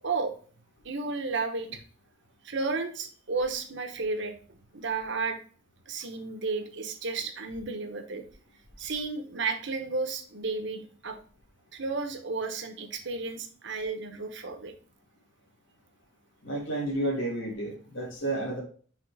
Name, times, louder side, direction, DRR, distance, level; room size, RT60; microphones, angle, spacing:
voice 1, 0.0-0.3 0.8-1.8 2.4-5.4 5.9-8.2 8.8-11.2 11.7-14.7, right 4 dB, 65° right, 5 dB, 1.0 m, -33 dB
voice 2, 16.4-18.6, right 1 dB, 70° left, -3 dB, 2.4 m, -31 dB
6.0 x 3.7 x 4.8 m, 0.43 s
head